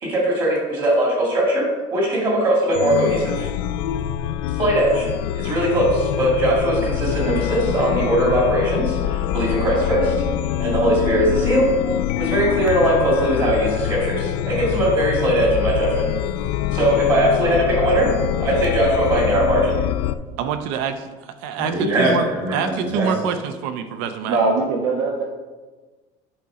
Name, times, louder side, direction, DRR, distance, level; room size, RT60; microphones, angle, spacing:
voice 1, 0.0-3.5 4.6-5.1 5.3-10.1 10.6-11.7 12.2-16.1 16.7-18.1 18.4-19.8 21.6-23.1, right 1 dB, 30° right, -2 dB, 2.0 m, -20 dB
Chime, 2.7-20.1, left 11 dB, 90° left, 0.4 m, -24 dB
voice 2, 20.4-21.0 21.4-22.3 22.5-24.4, right 7 dB, 65° right, 9 dB, 0.6 m, -25 dB
voice 3, 24.2-25.2, right 3 dB, 90° right, 0 dB, 1.1 m, -21 dB
9.1 x 4.1 x 4.9 m, 1.3 s
cardioid pair, 180°, 13 cm